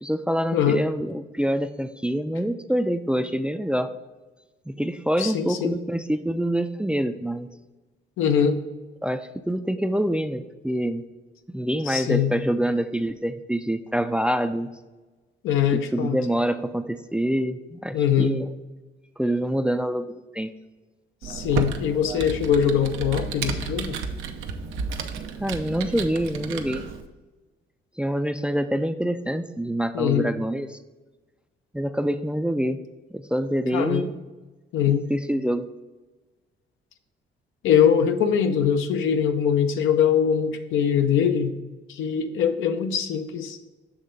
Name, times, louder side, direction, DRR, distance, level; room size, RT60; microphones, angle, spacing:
voice 1, 0.0-3.9 4.7-7.5 9.0-11.0 11.5-14.7 15.7-18.5 19.2-20.5 25.4-26.8 28.0-30.8 31.7-32.8 33.1-34.2 34.9-35.7, equal, 5° right, 10 dB, 0.3 m, -26 dB
voice 2, 5.2-5.8 8.2-8.6 11.9-12.3 15.4-16.2 17.9-18.3 21.2-24.0 29.9-30.3 33.7-34.1 34.7-35.1 37.6-41.5 41.9-43.6, left 8 dB, 85° left, 7 dB, 0.6 m, -22 dB
Computer keyboard, 21.2-27.0, right 5 dB, 90° right, 0.6 m, -32 dB
7.2 x 3.3 x 5.1 m, 1.2 s
cardioid pair, 90°, 20 cm